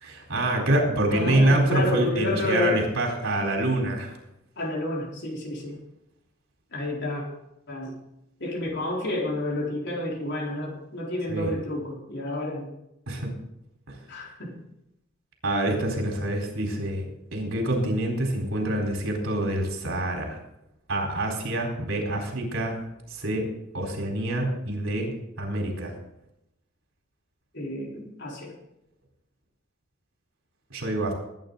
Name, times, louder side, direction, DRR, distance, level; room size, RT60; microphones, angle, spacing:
voice 1, 0.0-4.2 11.3-11.5 13.1-13.3 13.9-14.0 15.4-20.4 20.9-22.8 23.1-23.5 23.7-25.9 30.7-31.1, right 1 dB, 70° right, 1 dB, 4.3 m, -26 dB
voice 2, 1.1-2.9 4.6-5.8 6.7-7.2 7.7-8.0 8.4-12.7 14.1-14.6 27.5-28.5, left 2 dB, 60° left, -2 dB, 4.2 m, -30 dB
20.5 x 9.7 x 4.0 m, 0.84 s
head